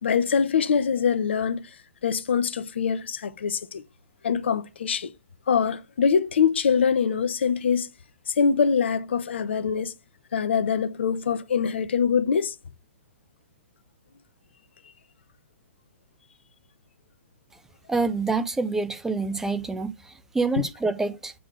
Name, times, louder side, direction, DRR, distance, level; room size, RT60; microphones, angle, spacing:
voice 1, 0.0-1.6 2.0-3.8 4.2-5.1 5.5-7.9 8.3-9.9 10.3-12.5, left 6 dB, 60° left, 0.9 m, -24 dB
voice 2, 17.9-21.3, right 3 dB, 5° right, 0.7 m, -27 dB
7.8 x 3.7 x 6.6 m
figure-of-eight pair, 115°, 7 cm